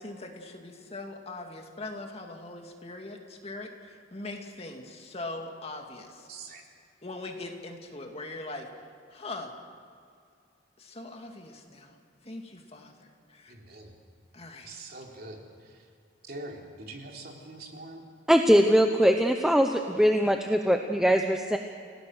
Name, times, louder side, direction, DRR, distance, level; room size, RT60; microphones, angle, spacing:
voice 1, 0.0-6.3 7.0-8.7 9.1-9.5 10.8-12.0 12.2-13.5 14.3-14.7, left 2 dB, 35° left, 3 dB, 2.3 m, -41 dB
voice 2, 6.3-6.6 13.5-14.0 14.6-15.9 16.2-18.1, right 2 dB, 55° right, 0 dB, 3.4 m, -44 dB
voice 3, 18.3-21.6, equal, 5° right, 4 dB, 0.8 m, -22 dB
29.5 x 18.0 x 6.4 m, 2.4 s
head